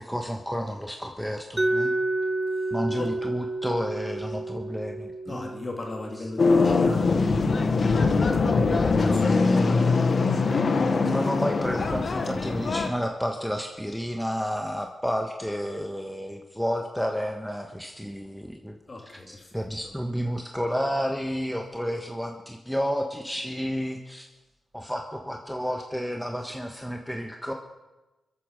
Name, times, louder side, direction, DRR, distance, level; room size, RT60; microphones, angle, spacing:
voice 1, 0.0-1.9 2.7-5.5 10.8-18.8 19.3-24.3 24.7-27.5, equal, ahead, 3 dB, 1.4 m, -31 dB
Mallet percussion, 1.6-7.4, right 2 dB, 15° right, 0.9 m, -31 dB
voice 2, 2.6-3.1 5.3-9.9 18.9-19.6, left 2 dB, 35° left, 1 dB, 3.6 m, -39 dB
sound 1, 6.4-12.9, left 4 dB, 55° left, 1.3 m, -22 dB
24.0 x 8.5 x 5.3 m, 1.1 s
cardioid pair, 55°, 0 cm